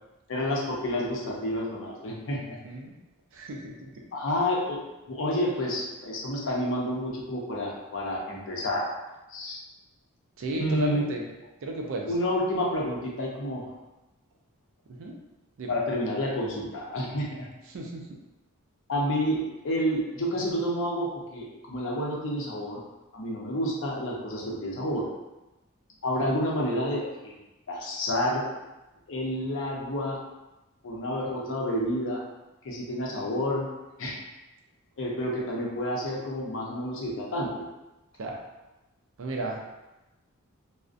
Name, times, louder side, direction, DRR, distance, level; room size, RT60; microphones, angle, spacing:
voice 1, 0.3-2.4 4.1-4.8 5.1-8.9 9.3-9.6 10.6-11.1 12.1-13.7 15.7-17.5 18.9-22.8 23.1-25.1 26.0-27.3 27.7-28.4 29.1-30.2 30.8-32.2 32.6-33.7 34.0-34.2 35.0-37.7, equal, 60° left, -2 dB, 0.6 m, -29 dB
voice 2, 2.3-2.9 3.3-4.0 10.4-11.2 11.6-12.1 15.0-15.1 15.6-15.7 17.7-18.0 38.2-38.4 39.2-39.7, right 2 dB, 65° right, 1 dB, 0.4 m, -34 dB
2.5 x 2.0 x 2.4 m, 1.0 s
head